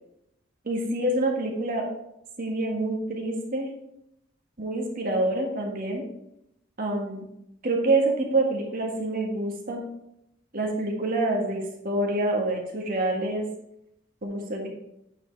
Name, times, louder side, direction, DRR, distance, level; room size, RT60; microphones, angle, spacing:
voice 1, 0.6-1.8 2.4-3.7 4.6-6.0 6.8-7.2 7.6-9.8 10.5-13.4 14.2-14.7, right 2 dB, 45° right, 0 dB, 1.6 m, -26 dB
8.8 x 4.7 x 4.6 m, 0.82 s
head